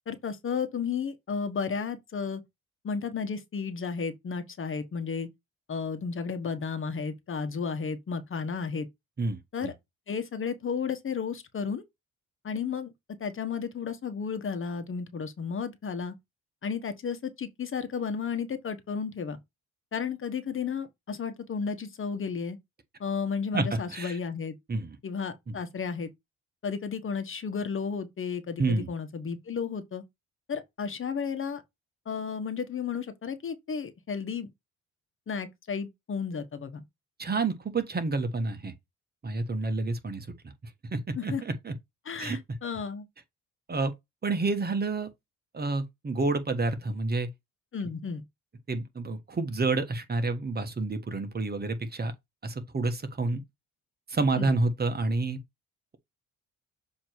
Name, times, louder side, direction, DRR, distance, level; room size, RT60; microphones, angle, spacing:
voice 1, 0.1-2.4 2.8-5.3 5.7-8.9 9.5-9.7 10.1-11.8 12.4-12.9 13.2-16.1 16.6-19.4 19.9-22.6 23.0-24.6 25.0-26.1 26.6-30.0 30.5-31.6 32.0-34.5 35.3-36.8 41.2-41.4 42.0-43.0 47.7-48.2 54.3-54.5, left 6 dB, 45° left, 1.3 m, -33 dB
voice 2, 9.2-9.7 23.5-24.2 24.7-25.0 25.5-25.6 28.6-28.9 37.2-38.7 39.2-40.3 40.9-41.7 42.1-42.4 43.7-43.9 44.2-45.1 45.5-47.3 48.7-52.1 52.4-53.4 54.1-55.4, right 3 dB, 30° right, 1.4 m, -29 dB
7.2 x 3.1 x 4.6 m
cardioid pair, 90°, 30 cm